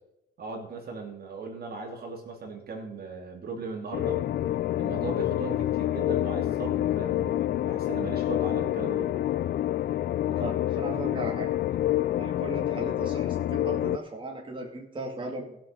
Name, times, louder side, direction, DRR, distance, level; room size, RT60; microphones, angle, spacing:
voice 1, 0.4-4.2 4.7-9.1, right 4 dB, 50° right, 1 dB, 2.7 m, -38 dB
sound 1, 3.9-14.0, left 13 dB, 55° left, 0.4 m, -27 dB
voice 2, 10.2-11.5 12.2-15.6, right 2 dB, 25° right, -1 dB, 2.3 m, -37 dB
16.0 x 6.2 x 5.3 m, 0.84 s
cardioid pair, 90°, 20 cm